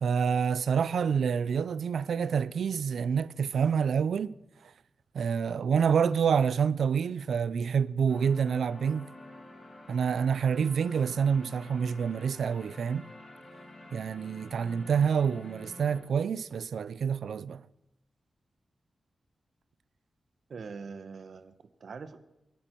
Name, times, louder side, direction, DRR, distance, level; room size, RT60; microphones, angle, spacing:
voice 1, 0.0-4.3 5.1-9.1 9.9-13.1 13.9-17.6, right 7 dB, 85° right, 0.5 m, -27 dB
sound 1, 8.1-16.0, left 1 dB, 45° left, 4.1 m, -48 dB
voice 2, 20.5-22.2, right 5 dB, 65° right, 1.0 m, -43 dB
24.0 x 11.0 x 4.6 m
wide cardioid pair, 150°, 0 cm